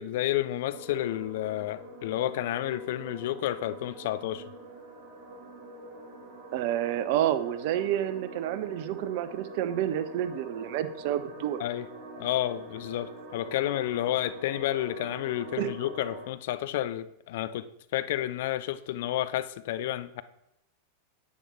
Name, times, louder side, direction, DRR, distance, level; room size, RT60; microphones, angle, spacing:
voice 1, 0.0-4.4 11.6-11.9 12.2-20.2, left 13 dB, 55° left, 14 dB, 0.6 m, -31 dB
sound 1, 0.7-16.3, right 2 dB, 35° right, 3.1 m, -45 dB
voice 2, 6.5-11.6 15.6-15.7, right 11 dB, 50° right, 12 dB, 0.8 m, -29 dB
10.5 x 8.6 x 4.3 m, 0.80 s
figure-of-eight pair, 90°, 0 cm